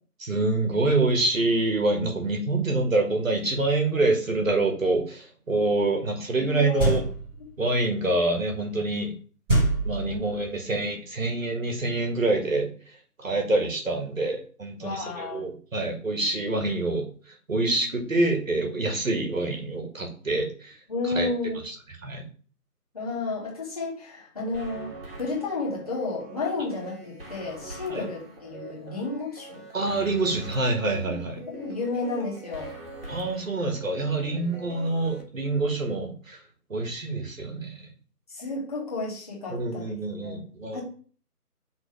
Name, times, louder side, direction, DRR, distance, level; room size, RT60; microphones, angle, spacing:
voice 1, 0.2-7.0 7.6-9.1 9.8-21.3 21.6-22.2 27.9-28.0 29.7-31.4 33.1-36.4 36.7-37.9 39.5-40.8, right 2 dB, 55° right, 2 dB, 1.7 m, -26 dB
voice 2, 6.5-6.9 10.0-10.2 10.5-10.6 14.8-15.4 20.9-21.6 22.9-24.9 25.2-29.6 31.1-31.2 31.5-32.7 38.3-39.8 40.2-40.4 40.7-40.8, left 3 dB, 25° left, -5 dB, 1.8 m, -32 dB
sound 1, 6.8-7.4 9.5-10.5, right 2 dB, 5° right, 1.9 m, -24 dB
sound 2, 24.5-35.2, right 2 dB, 40° right, 1.8 m, -43 dB
5.0 x 4.0 x 5.1 m, 0.43 s
figure-of-eight pair, 165°, 47 cm